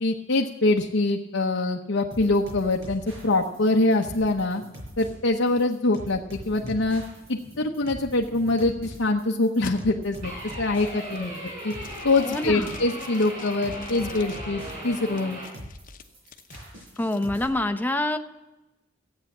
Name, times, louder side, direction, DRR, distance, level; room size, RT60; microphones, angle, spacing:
voice 1, 0.0-4.6 5.0-7.0 7.3-11.7 12.0-15.4, left 2 dB, 75° left, 0 dB, 0.9 m, -24 dB
sound 1, 2.1-17.5, equal, 70° right, 6.2 m, -42 dB
sound 2, 2.8-9.2 9.6-9.7 10.3-10.6 11.0-11.4 11.8-14.7 15.2-17.2, left 3 dB, 45° left, 1.0 m, -47 dB
sound 3, 10.2-15.5, equal, 30° right, 5.8 m, -38 dB
voice 2, 11.2-11.5 12.2-12.7 17.0-18.2, left 1 dB, 10° left, 7 dB, 0.7 m, -27 dB
14.5 x 8.9 x 7.3 m, 0.99 s
head